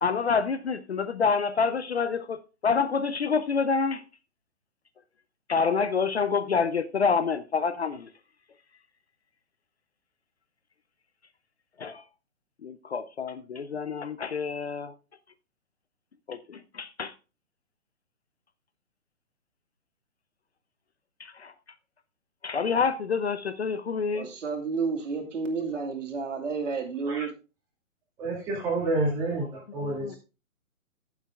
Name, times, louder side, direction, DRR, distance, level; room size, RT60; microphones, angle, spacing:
voice 1, 0.0-4.0 5.5-8.1 11.8-12.0 12.6-14.9 16.3-17.1 21.2-21.5 22.4-24.3 29.8-30.2, left 5 dB, 50° left, 0.6 m, -27 dB
voice 2, 24.1-27.3, right 4 dB, 60° right, 2.5 m, -31 dB
voice 3, 28.2-30.2, right 2 dB, 10° right, 2.1 m, -29 dB
15.0 x 7.2 x 2.3 m
hypercardioid pair, 175°, 41 cm